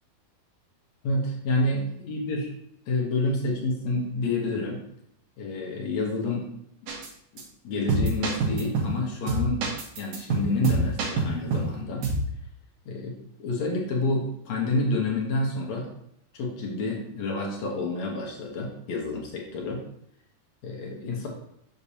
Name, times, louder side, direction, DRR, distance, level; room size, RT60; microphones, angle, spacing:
voice 1, 1.0-2.5 2.9-4.8 5.4-6.5 7.6-9.6 10.0-12.1 12.8-15.9 16.3-19.8 20.6-21.3, left 2 dB, 70° left, -1 dB, 1.6 m, -28 dB
sound 1, 6.9-7.1 7.4-7.5 7.9-9.0 9.3-11.7 12.0-12.3, right 2 dB, 65° right, 2.4 m, -26 dB
6.7 x 6.7 x 2.8 m, 0.74 s
omnidirectional pair, 4.6 m